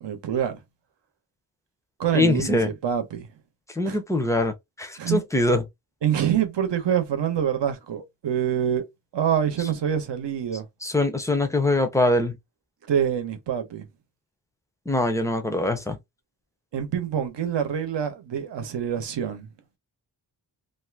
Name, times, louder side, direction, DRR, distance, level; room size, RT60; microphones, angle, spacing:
voice 1, 0.0-0.6 2.0-3.3 3.9-4.0 5.0-5.2 6.0-8.8 9.1-10.7 12.9-13.9 16.7-19.5, right 9 dB, 80° right, 0.8 m, -26 dB
voice 2, 2.1-2.7 3.8-5.6 10.8-12.4 14.9-16.0, left 2 dB, 10° left, 0.4 m, -23 dB
2.6 x 2.4 x 3.3 m
wide cardioid pair, 180°, 42 cm